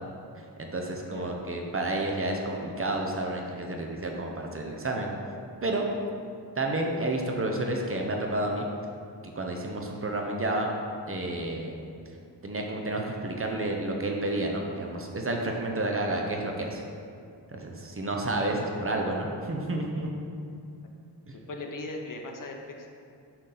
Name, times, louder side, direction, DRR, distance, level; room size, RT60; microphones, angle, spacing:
voice 1, 0.6-5.1 5.6-5.9 6.6-8.7 9.4-10.7 11.1-11.8 12.4-16.8 17.5-20.1, right 2 dB, 30° right, 1 dB, 0.7 m, -30 dB
voice 2, 21.5-22.9, left 2 dB, 45° left, 2 dB, 0.8 m, -38 dB
6.6 x 5.8 x 3.9 m, 2.4 s
wide cardioid pair, 130°, 43 cm